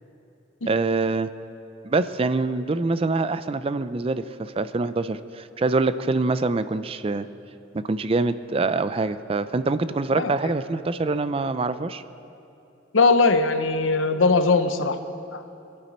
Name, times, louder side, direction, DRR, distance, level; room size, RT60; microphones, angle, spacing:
voice 1, 0.7-1.3 1.8-7.3 7.7-12.0, right 3 dB, 30° right, 13 dB, 0.4 m, -25 dB
voice 2, 12.9-15.0 15.3-15.4, left 3 dB, 85° left, 9 dB, 0.9 m, -20 dB
22.5 x 11.0 x 4.3 m, 2.8 s
head